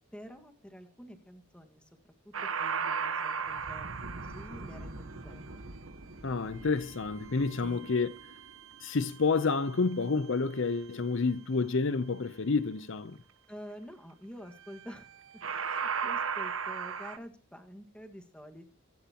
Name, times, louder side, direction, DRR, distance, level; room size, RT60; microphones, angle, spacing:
voice 1, 0.1-1.9 2.2-2.3 2.6-3.9 4.1-5.6 7.6-7.9 13.5-15.1 15.7-18.7, equal, 5° left, 1.7 m, -48 dB
sound 1, 2.3-9.5 14.7-15.1 15.4-17.2, right 6 dB, 70° right, 1.2 m, -37 dB
voice 2, 6.2-8.1 8.8-13.2, left 4 dB, 60° left, 0.7 m, -29 dB
24.0 x 11.0 x 2.9 m
head